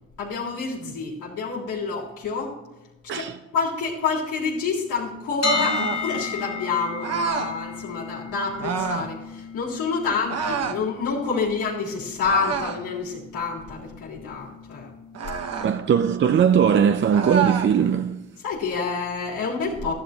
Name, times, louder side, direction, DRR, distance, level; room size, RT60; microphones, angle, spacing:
voice 1, 0.2-2.6 3.1-14.9 18.4-19.9, left 4 dB, 90° left, 3.6 m, -28 dB
sound 1, 5.4-17.3, left 5 dB, 60° left, 1.3 m, -35 dB
sound 2, 5.5-6.1 7.0-7.5 8.6-9.1 10.3-10.8 12.2-12.9 15.1-15.7 17.1-17.7, right 6 dB, 55° right, 1.3 m, -28 dB
voice 2, 15.6-18.2, right 8 dB, 40° right, 0.6 m, -20 dB
13.0 x 11.5 x 3.0 m
cardioid pair, 90°, 30 cm